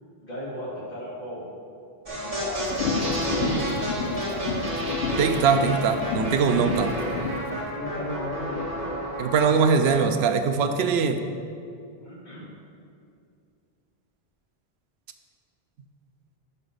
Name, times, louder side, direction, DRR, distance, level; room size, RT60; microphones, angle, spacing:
voice 1, 0.2-1.5 2.2-2.8 3.1-3.7 4.0-4.5 6.5-6.6 7.7-8.7 12.0-12.5, equal, 45° left, -6 dB, 2.1 m, -35 dB
sound 1, 2.1-10.1, equal, 35° right, 1.8 m, -30 dB
sound 2, 2.6-7.4, left 4 dB, 80° left, 1.0 m, -31 dB
voice 2, 5.2-6.9 9.2-11.2, right 5 dB, 80° right, 7 dB, 0.8 m, -22 dB
5.9 x 5.6 x 6.5 m, 2.4 s
omnidirectional pair, 1.0 m